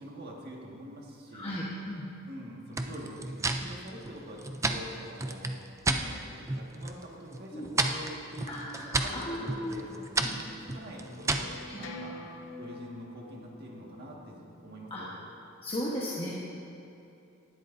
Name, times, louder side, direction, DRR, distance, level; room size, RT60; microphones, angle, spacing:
voice 1, 0.0-1.6 2.3-5.6 5.9-12.2 12.6-15.1, equal, 50° right, -2 dB, 1.8 m, -45 dB
voice 2, 1.3-2.0 7.5-7.7 8.5-9.8 10.2-10.3 11.7-11.8 14.9-15.0 15.6-16.3, equal, 30° left, -6 dB, 1.2 m, -36 dB
sound 1, 2.7-6.1 6.4-7.0 7.3-11.6, right 3 dB, 15° right, 0.5 m, -32 dB
sound 2, 10.4-15.5, left 2 dB, 70° left, 0.8 m, -47 dB
18.5 x 12.0 x 2.7 m, 2.8 s
head